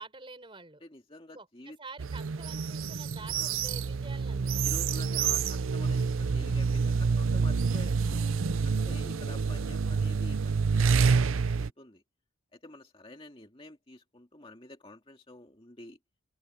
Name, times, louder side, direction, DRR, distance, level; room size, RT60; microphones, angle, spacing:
voice 1, 0.0-0.8 1.3-4.8, right 3 dB, 25° right, 4.8 m, -48 dB
voice 2, 0.8-1.8 3.2-3.6 4.6-8.3 8.6-12.0 12.5-16.0, left 2 dB, 25° left, 2.1 m, -49 dB
sound 1, 2.0-11.7, right 5 dB, 70° right, 0.6 m, -28 dB
open air
head